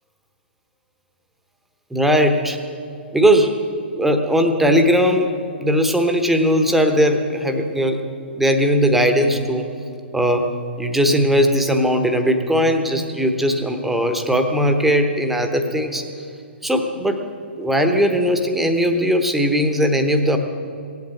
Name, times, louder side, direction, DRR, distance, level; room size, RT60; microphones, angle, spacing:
voice 1, 1.9-2.6 3.1-3.5 3.9-5.3 5.6-8.0 8.4-9.6 10.1-10.5 10.8-16.0 16.6-17.2 17.6-20.4, equal, 5° right, 5 dB, 1.0 m, -18 dB
17.0 x 8.2 x 8.0 m, 2.5 s
figure-of-eight pair, 120°, 6 cm